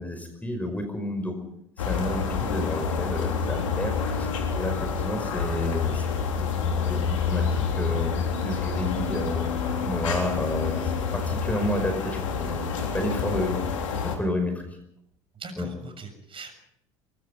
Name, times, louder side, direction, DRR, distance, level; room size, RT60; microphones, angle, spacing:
voice 1, 0.0-1.3 1.8-6.1 6.4-9.4 9.8-13.6 14.0-14.6 15.6-15.7, left 1 dB, 10° left, 6 dB, 5.2 m, -31 dB
sound 1, 1.8-14.2, left 6 dB, 80° left, 3.7 m, -28 dB
voice 2, 15.4-16.5, right 3 dB, 35° right, 7 dB, 7.0 m, -41 dB
24.0 x 23.5 x 5.4 m, 0.74 s
hypercardioid pair, 70°, 16 cm